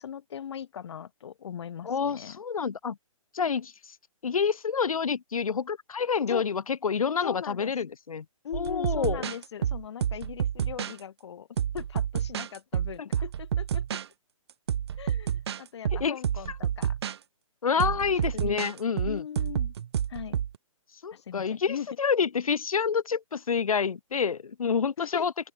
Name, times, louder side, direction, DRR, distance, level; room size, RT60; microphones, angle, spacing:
voice 1, 0.0-2.4 6.3-6.5 7.2-7.7 8.4-14.0 15.0-17.0 17.8-18.6 19.0-19.7 20.1-20.4 21.1-21.9 25.0-25.2, left 8 dB, 50° left, 5.6 m, -40 dB
voice 2, 1.9-3.0 3.3-3.7 4.2-8.3 8.5-9.2 16.0-16.2 17.6-19.2 21.0-25.3, left 6 dB, 80° left, 1.7 m, -28 dB
sound 1, 8.5-11.0 11.6-14.1 14.5-17.2 17.8-20.6, right 9 dB, 50° right, 0.5 m, -29 dB
open air
hypercardioid pair, 160°, 18 cm